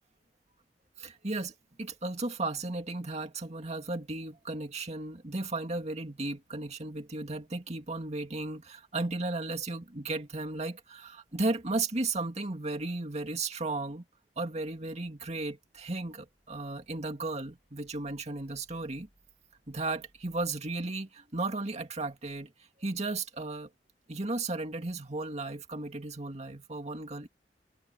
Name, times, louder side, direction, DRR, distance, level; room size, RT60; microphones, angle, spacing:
voice 1, 1.0-14.0 14.4-19.1 19.7-22.5 22.8-23.7 24.1-27.3, right 2 dB, 40° right, 2.2 m, -35 dB
head